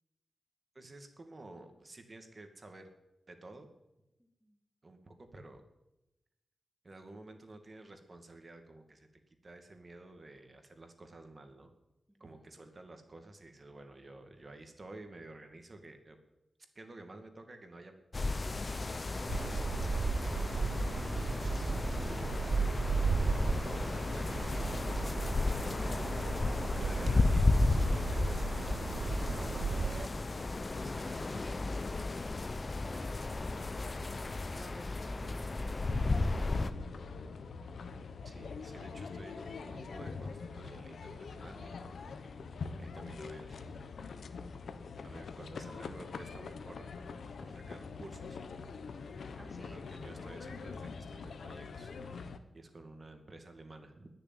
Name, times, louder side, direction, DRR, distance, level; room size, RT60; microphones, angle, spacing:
voice 1, 0.7-2.9 3.3-3.7 4.8-5.6 6.8-9.1 9.4-11.7 12.2-16.2 16.7-17.9 19.1-19.7 21.5-22.3 23.2-26.3 26.8-30.2 30.8-31.8 38.2-41.8 42.8-43.8 45.0-46.9 47.4-48.4 49.4-54.1, right 2 dB, 40° right, 6 dB, 2.2 m, -52 dB
voice 2, 4.2-4.6 12.1-12.4 21.4-21.7 22.0-22.5 32.8-33.2 34.5-37.4 37.8-37.9 49.4-49.8, equal, 5° right, 4 dB, 1.5 m, -55 dB
sound 1, 18.1-36.7, left 3 dB, 40° left, 0.9 m, -33 dB
sound 2, 19.3-30.1, right 5 dB, 65° right, 0.4 m, -35 dB
sound 3, 35.9-52.4, left 4 dB, 90° left, 1.0 m, -44 dB
20.0 x 6.9 x 9.0 m, 0.96 s
wide cardioid pair, 80°, 0 cm